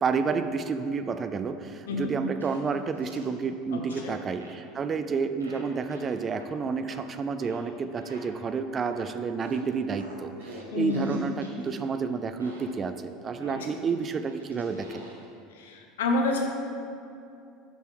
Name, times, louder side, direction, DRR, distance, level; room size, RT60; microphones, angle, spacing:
voice 1, 0.0-15.0, right 5 dB, 30° right, 9 dB, 0.4 m, -30 dB
sound 1, 1.9-2.0 2.4-3.4 3.9-4.7 5.4-8.5 8.9-11.8 12.4-12.9 13.4-15.3, right 1 dB, 85° right, 1.0 m, -47 dB
voice 2, 3.7-4.2 10.7-11.2 13.5-13.7 15.5-16.5, left 3 dB, 70° left, 2 dB, 0.9 m, -29 dB
7.1 x 5.9 x 4.4 m, 2.6 s
figure-of-eight pair, 70°, 0 cm